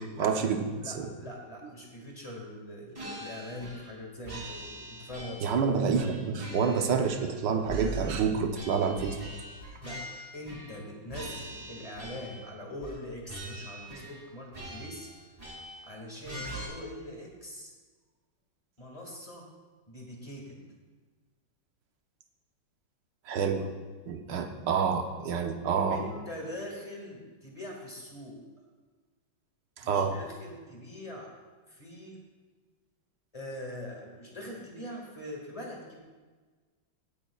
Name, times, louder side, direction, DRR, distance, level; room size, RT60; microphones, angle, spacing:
voice 1, 0.2-1.1 5.4-9.2 23.3-23.7 24.1-26.0 29.8-30.1, right 6 dB, 65° right, 4 dB, 1.4 m, -28 dB
voice 2, 0.8-5.5 9.8-10.0 10.3-15.1 15.8-17.7 18.8-19.5 19.9-20.7 25.9-28.4 29.8-31.3 31.7-32.2 33.3-36.0, left 1 dB, 15° left, -1 dB, 1.9 m, -42 dB
sound 1, 2.9-4.0 4.2-5.6 5.9-7.4 7.7-10.8 11.1-12.5 12.8-13.0 13.3-14.2 14.5-15.9 16.2-16.7, right 1 dB, 20° right, 2.6 m, -42 dB
17.0 x 9.8 x 2.4 m, 1.4 s
omnidirectional pair, 2.2 m